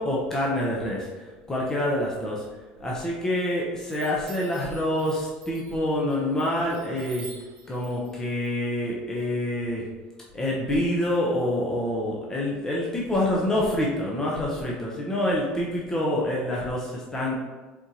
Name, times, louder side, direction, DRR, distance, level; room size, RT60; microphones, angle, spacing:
voice 1, 0.0-2.5 2.8-7.3 7.7-9.9 10.3-17.4, left 1 dB, 15° left, -4 dB, 0.7 m, -27 dB
Chime, 2.8-3.4 3.8-9.7, right 5 dB, 75° right, 1.3 m, -49 dB
4.4 x 3.8 x 2.8 m, 1.3 s
cardioid pair, 130°, 4 cm